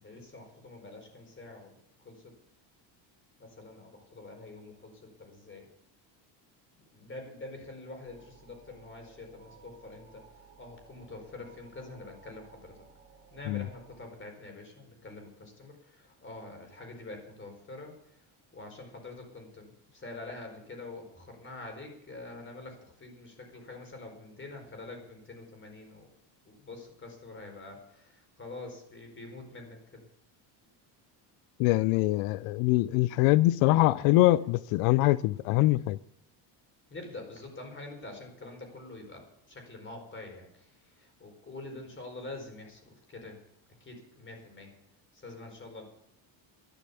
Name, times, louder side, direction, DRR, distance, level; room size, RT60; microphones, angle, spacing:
voice 1, 0.0-1.7 2.0-2.3 3.4-5.7 6.9-12.8 13.3-18.2 18.5-26.1 26.4-30.0 36.9-43.4 43.8-44.7 45.1-45.8, left 2 dB, 25° left, 4.5 m, -46 dB
sound 1, 8.0-14.1, right 5 dB, 20° right, 3.0 m, -58 dB
voice 2, 31.6-36.0, left 17 dB, 85° left, 0.6 m, -24 dB
12.0 x 11.5 x 6.9 m
cardioid pair, 125°, 50 cm